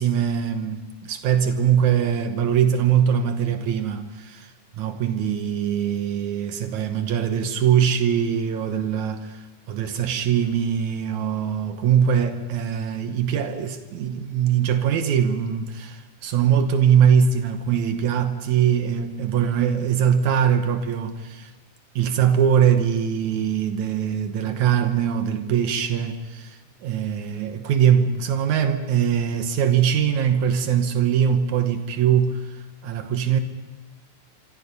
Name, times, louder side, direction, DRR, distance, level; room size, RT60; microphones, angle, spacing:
voice 1, 0.0-21.5 21.9-33.4, right 8 dB, 80° right, 1.7 m, -22 dB
26.0 x 26.0 x 5.5 m
omnidirectional pair, 5.0 m